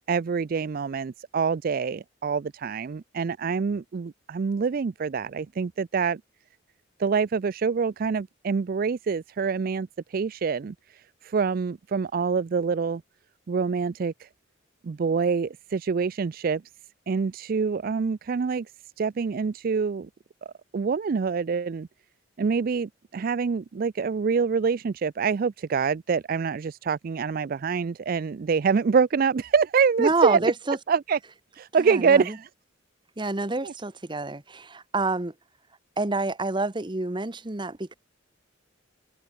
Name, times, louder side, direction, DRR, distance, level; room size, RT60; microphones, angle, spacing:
voice 1, 0.1-6.2 7.0-13.0 13.5-14.3 14.8-16.6 17.1-18.7 19.0-20.1 20.7-21.9 22.4-30.4 30.9-31.2 31.5-32.5 33.6-33.7, right 5 dB, 50° right, 0.4 m, -26 dB
voice 2, 30.0-30.8 31.9-32.4 33.2-35.3 36.0-37.9, right 2 dB, 25° right, 1.0 m, -28 dB
open air
head